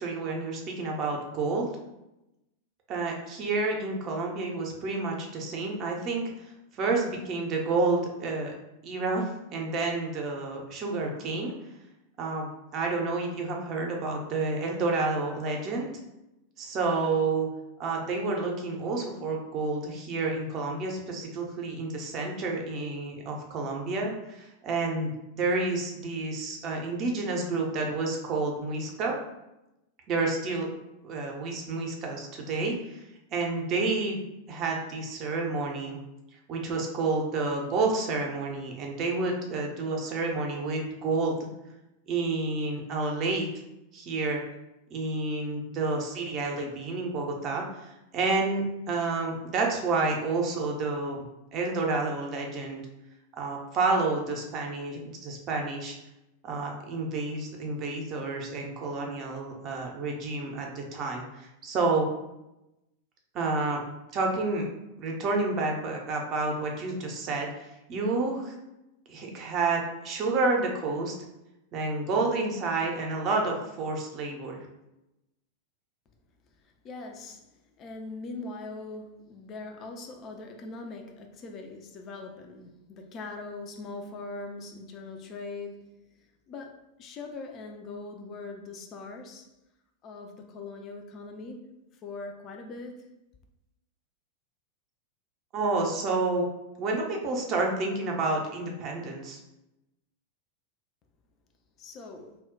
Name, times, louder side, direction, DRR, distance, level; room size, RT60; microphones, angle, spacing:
voice 1, 0.0-1.7 2.9-6.5 6.8-8.5 8.8-11.5 12.2-15.9 16.6-17.5 17.8-29.2 30.1-30.7 31.0-33.0 33.3-36.0 36.5-41.4 42.1-43.5 43.9-44.4 44.9-51.2 51.5-52.8 53.4-56.0 56.4-62.1 63.3-63.8 64.1-64.7 65.0-68.5 69.1-71.1 71.7-74.6 95.5-96.5 96.8-99.4, right 3 dB, 35° right, 0 dB, 0.5 m, -29 dB
voice 2, 76.6-86.0 86.5-89.5 90.0-93.1 101.8-102.4, left 3 dB, 30° left, 3 dB, 0.3 m, -41 dB
2.2 x 2.1 x 3.6 m, 0.93 s
figure-of-eight pair, 90°, 0 cm